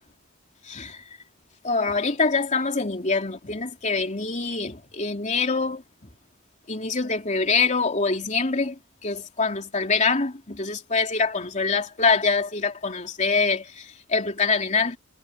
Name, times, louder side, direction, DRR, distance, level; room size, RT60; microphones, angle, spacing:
voice 1, 0.6-1.0 1.6-6.1 6.7-15.0, left 4 dB, 35° left, 3.1 m, -25 dB
head